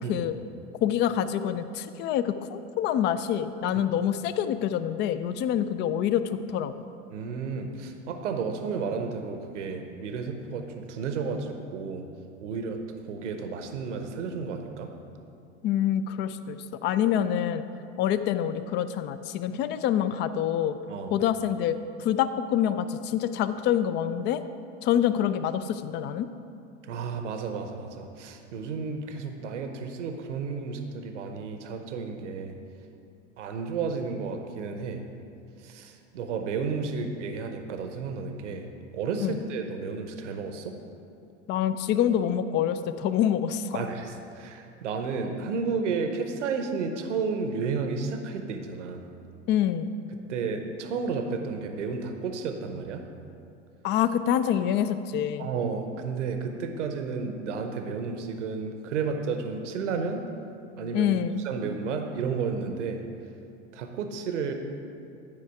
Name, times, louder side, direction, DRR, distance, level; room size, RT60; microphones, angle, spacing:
voice 1, 0.8-6.2 6.5-6.7 15.6-17.6 18.0-20.7 21.1-24.4 24.8-26.3 39.2-39.4 41.5-43.8 49.5-49.9 53.8-55.5 60.9-61.4, left 10 dB, 30° left, 12 dB, 0.4 m, -26 dB
voice 2, 7.1-12.0 12.4-12.8 13.1-14.9 20.9-21.2 26.9-32.6 33.4-35.0 35.6-38.7 38.9-40.7 43.7-49.0 50.3-53.0 55.4-60.2 60.8-61.1 61.4-63.0 63.7-64.5, right 5 dB, 75° right, 5 dB, 0.8 m, -32 dB
11.0 x 4.8 x 4.7 m, 2.6 s
hypercardioid pair, 85°, 37 cm